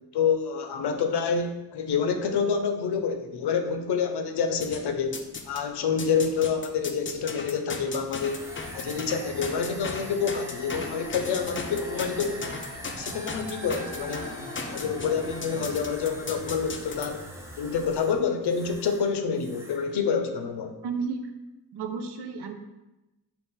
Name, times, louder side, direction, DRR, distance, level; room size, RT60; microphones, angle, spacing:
voice 1, 0.1-5.2 5.5-8.5 8.7-12.5 13.0-14.3 14.7-17.3 17.6-20.8, left 6 dB, 80° left, 6 dB, 0.5 m, -27 dB
sound 1, 4.6-5.6 6.0-17.1, left 4 dB, 30° left, 0.5 m, -37 dB
sound 2, 8.1-19.1 19.4-19.9, right 1 dB, 5° right, 0.7 m, -42 dB
voice 2, 20.8-21.2 21.7-22.5, right 5 dB, 85° right, 7 dB, 0.5 m, -32 dB
4.0 x 2.4 x 3.7 m, 1.0 s
cardioid pair, 45°, 39 cm